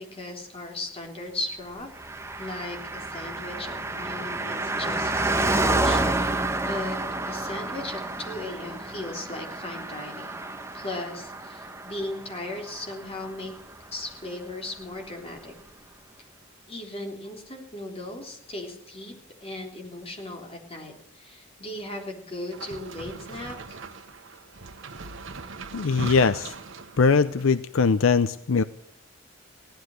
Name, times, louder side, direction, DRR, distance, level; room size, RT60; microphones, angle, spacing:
voice 1, 0.0-1.9 2.4-7.0 7.2-10.4 10.7-13.5 13.9-15.5 16.7-19.1 19.4-23.8, left 2 dB, 30° left, 2 dB, 3.6 m, -37 dB
Car passing by, 2.0-13.8 14.1-14.2, right 2 dB, 15° right, 1.2 m, -29 dB
sound 1, 22.5-27.6, right 3 dB, 65° right, 1.2 m, -40 dB
voice 2, 25.7-26.5 27.0-28.6, left 5 dB, 75° left, 13 dB, 0.6 m, -21 dB
17.0 x 12.0 x 6.4 m, 0.75 s
head